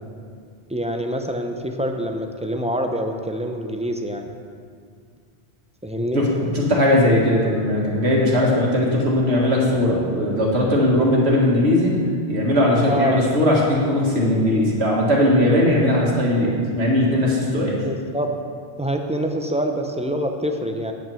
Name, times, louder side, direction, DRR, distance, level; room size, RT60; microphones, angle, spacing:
voice 1, 0.7-4.3 5.8-6.2 12.8-13.2 17.8-18.3 18.8-20.9, equal, 10° right, 3 dB, 0.3 m, -25 dB
voice 2, 6.1-11.9 12.3-17.8, left 1 dB, 70° right, -3 dB, 2.1 m, -19 dB
9.3 x 6.0 x 7.0 m, 2.2 s
omnidirectional pair, 1.2 m